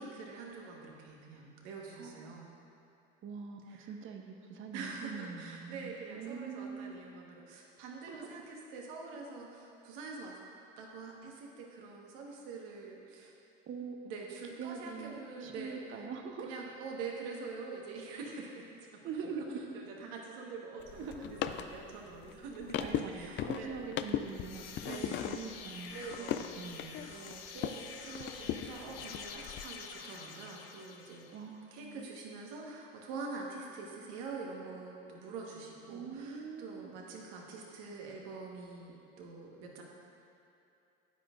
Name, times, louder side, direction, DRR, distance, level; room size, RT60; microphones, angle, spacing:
voice 1, 0.0-2.5 3.7-3.9 4.7-10.4 10.8-13.3 14.0-16.1 16.4-19.0 19.7-23.8 24.8-25.5 25.9-26.7 27.0-31.2 31.7-39.8, right 4 dB, 75° right, -1 dB, 1.5 m, -45 dB
voice 2, 2.0-2.3 3.2-7.0 8.1-8.3 13.2-13.3 13.7-14.0 14.6-16.5 19.0-19.6 20.9-21.2 22.8-26.3 26.5-27.1 31.3-32.1 35.9-36.9, right 5 dB, 45° right, 4 dB, 0.9 m, -43 dB
sound 1, 20.8-27.8 28.1-29.6, left 10 dB, 40° left, 0.4 m, -38 dB
sound 2, 24.2-31.5, left 6 dB, 85° left, 0.7 m, -48 dB
9.8 x 8.8 x 2.5 m, 2.7 s
hypercardioid pair, 85°, 29 cm